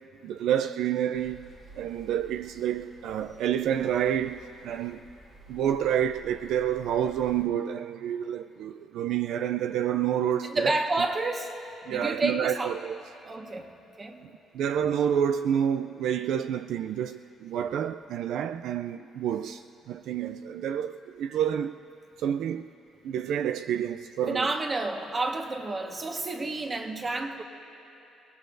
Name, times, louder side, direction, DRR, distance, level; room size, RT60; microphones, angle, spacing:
voice 1, 0.2-1.4 1.8-5.0 5.5-10.7 11.9-13.0 14.5-21.8 22.2-22.7 23.0-24.5, right 9 dB, 75° right, 0.3 m, -28 dB
sound 1, 1.1-7.4, right 1 dB, 50° right, 2.8 m, -53 dB
voice 2, 10.4-11.5 11.9-12.8 13.2-13.7 14.0-14.2 24.3-27.4, right 2 dB, 30° right, 1.3 m, -30 dB
29.5 x 19.0 x 2.6 m
cardioid pair, 110°, 0 cm